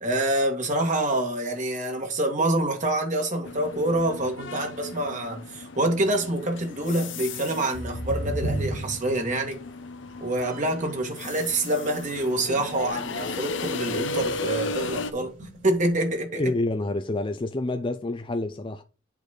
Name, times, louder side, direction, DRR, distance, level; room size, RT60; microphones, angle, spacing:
voice 1, 0.0-9.6 10.2-15.3 15.6-16.5, right 1 dB, 40° right, 2.0 m, -26 dB
sound 1, 3.4-15.1, left 3 dB, 70° left, 0.7 m, -35 dB
sound 2, 7.5-10.9 11.2-13.5 13.8-14.0 14.3-16.1, right 1 dB, 65° right, 3.8 m, -36 dB
voice 2, 16.3-18.8, left 2 dB, 25° left, 0.5 m, -28 dB
8.1 x 4.2 x 5.1 m
head